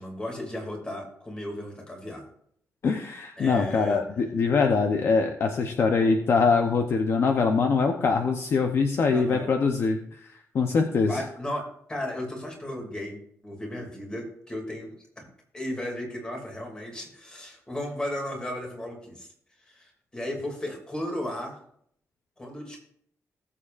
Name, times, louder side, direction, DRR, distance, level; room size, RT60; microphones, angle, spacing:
voice 1, 0.0-2.2 3.4-4.0 9.1-9.5 11.0-11.6 11.9-13.2 13.4-15.2 15.5-19.3 19.7-21.6 22.4-22.8, left 1 dB, 15° left, 0 dB, 2.5 m, -35 dB
voice 2, 2.8-10.2 10.5-11.2, left 4 dB, 45° left, 5 dB, 0.7 m, -23 dB
19.0 x 7.2 x 2.5 m, 0.67 s
wide cardioid pair, 170°, 6 cm